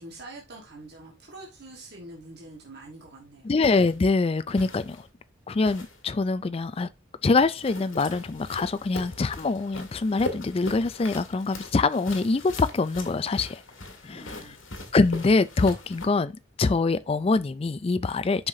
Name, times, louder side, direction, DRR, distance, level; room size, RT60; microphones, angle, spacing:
voice 1, 0.0-3.7 14.1-14.6, right 2 dB, 50° right, 1.5 m, -45 dB
voice 2, 3.4-5.0 5.5-6.9 7.2-13.6 14.0-14.6 14.9-18.5, left 3 dB, 30° left, 0.3 m, -24 dB
sound 1, 3.6-4.0 4.6-5.1 5.6-6.0 7.6-16.1, left 2 dB, 65° left, 1.8 m, -40 dB
7.8 x 5.7 x 2.7 m
head